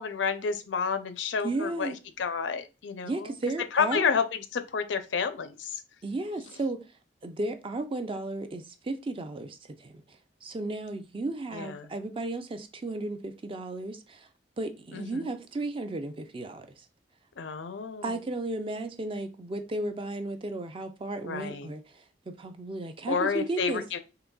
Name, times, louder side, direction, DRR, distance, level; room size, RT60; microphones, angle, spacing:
voice 1, 0.0-3.3 3.7-5.8 11.5-11.9 14.9-15.3 17.4-18.2 21.2-21.7 23.1-24.0, left 6 dB, 75° left, 0.5 m, -30 dB
voice 2, 1.4-2.0 3.0-4.0 6.0-6.8 7.2-10.0 10.4-14.3 14.6-16.7 18.0-23.8, right 2 dB, 30° right, 0.4 m, -34 dB
3.8 x 2.9 x 2.3 m
head